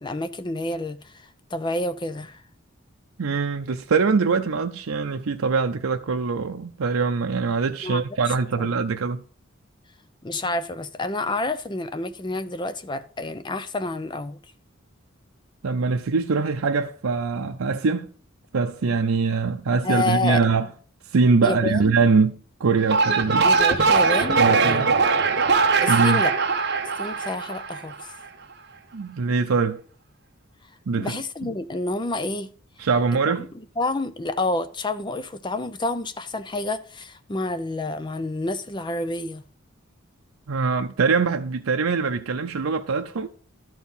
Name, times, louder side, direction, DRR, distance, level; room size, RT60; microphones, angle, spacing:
voice 1, 0.0-2.4 7.8-8.7 10.2-14.4 19.8-20.4 21.4-21.9 23.4-24.9 25.8-26.3 27.0-28.1 30.9-32.5 33.4-39.4, left 2 dB, 20° left, 0.5 m, -29 dB
voice 2, 3.2-9.2 15.6-18.1 18.5-20.7 21.1-22.3 22.6-23.5 24.4-24.9 25.9-26.2 28.9-29.8 30.9-31.5 32.8-33.5 40.5-43.3, right 4 dB, 85° right, 0.6 m, -23 dB
sound 1, 22.8-28.1, right 4 dB, 50° right, 1.0 m, -20 dB
12.0 x 4.6 x 5.4 m
head